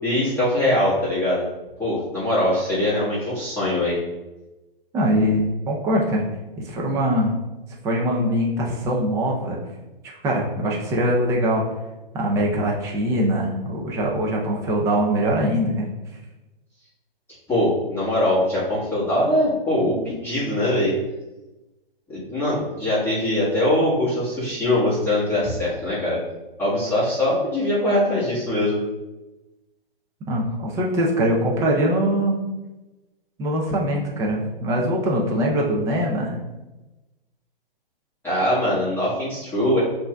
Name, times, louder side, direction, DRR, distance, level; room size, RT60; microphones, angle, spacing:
voice 1, 0.0-1.4 1.8-4.0 17.5-20.9 22.1-26.2 26.6-28.8 38.2-39.8, left 1 dB, 5° left, -12 dB, 1.4 m, -22 dB
voice 2, 4.9-6.2 6.6-7.3 7.8-9.6 10.2-11.6 12.1-15.9 30.3-32.4 33.4-36.4, equal, 10° right, -1 dB, 0.4 m, -22 dB
7.6 x 2.6 x 2.2 m, 1.1 s
hypercardioid pair, 130°, 29 cm